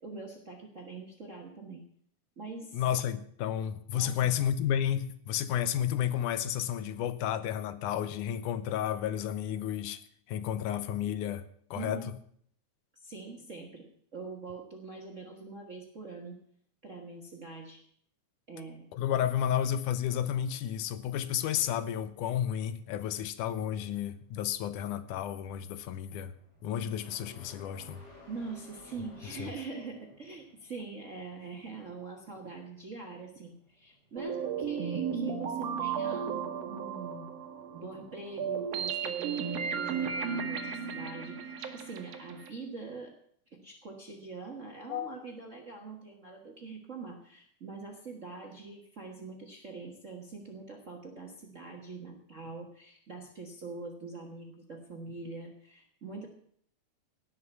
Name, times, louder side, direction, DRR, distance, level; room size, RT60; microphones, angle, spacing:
voice 1, 0.0-1.8 2.4-2.8 3.9-4.3 11.7-12.1 12.9-16.4 16.8-17.8 18.5-18.9 28.3-37.4 37.7-43.1 43.5-56.3, right 3 dB, 40° right, 1.1 m, -44 dB
voice 2, 2.7-10.0 10.3-12.1 18.9-26.3 26.6-28.0 29.4-29.5 44.9-45.2, left 10 dB, 85° left, 2.3 m, -32 dB
sound 1, 22.8-39.8, equal, 40° left, 8.1 m, -59 dB
sound 2, 34.2-42.5, right 7 dB, 60° right, 2.1 m, -34 dB
17.5 x 6.0 x 8.2 m
omnidirectional pair, 3.5 m